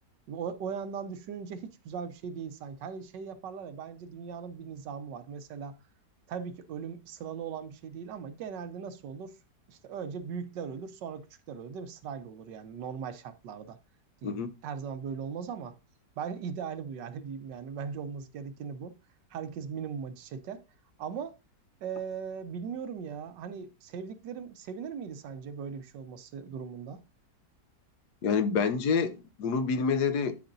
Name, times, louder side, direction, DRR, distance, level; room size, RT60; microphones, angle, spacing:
voice 1, 0.3-5.7 6.3-9.3 9.7-13.8 14.2-15.7 16.2-18.9 19.3-20.6 21.0-21.4 21.8-27.0, right 6 dB, 85° right, 1.4 m, -39 dB
voice 2, 28.2-30.4, left 5 dB, 70° left, 1.3 m, -27 dB
12.0 x 5.3 x 2.6 m
omnidirectional pair, 1.9 m